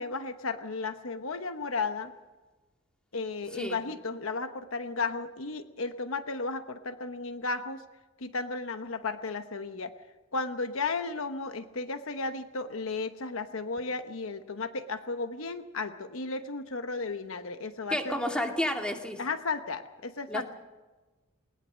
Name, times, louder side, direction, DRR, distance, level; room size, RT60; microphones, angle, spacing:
voice 1, 0.0-2.1 3.1-7.8 8.2-9.9 10.3-18.2 19.2-20.4, left 3 dB, 75° left, 9 dB, 1.1 m, -34 dB
voice 2, 17.9-19.2 20.3-20.4, left 1 dB, 5° left, 2 dB, 2.2 m, -30 dB
20.5 x 20.0 x 6.4 m, 1.2 s
head